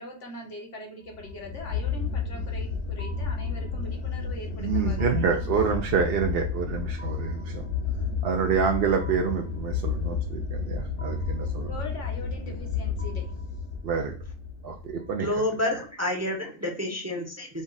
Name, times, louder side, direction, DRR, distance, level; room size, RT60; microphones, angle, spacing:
voice 1, 0.0-6.2 11.6-13.3, left 1 dB, 65° left, 0 dB, 1.7 m, -42 dB
sound 1, 1.1-15.3, left 5 dB, 50° left, 1.1 m, -31 dB
voice 2, 4.6-7.6 8.2-11.7 13.8-14.1 14.6-15.3, right 6 dB, 60° right, 2 dB, 0.7 m, -27 dB
voice 3, 15.2-17.6, left 1 dB, 15° right, 1 dB, 0.8 m, -29 dB
5.2 x 2.4 x 3.9 m, 0.39 s
omnidirectional pair, 1.3 m